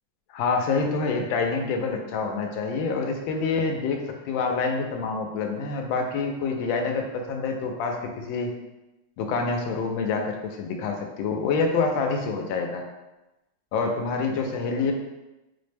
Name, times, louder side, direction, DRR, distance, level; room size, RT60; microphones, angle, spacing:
voice 1, 0.3-8.5 9.2-12.9 13.7-14.9, left 4 dB, 80° left, 3 dB, 1.3 m, -27 dB
4.3 x 2.0 x 3.3 m, 1.0 s
omnidirectional pair, 2.1 m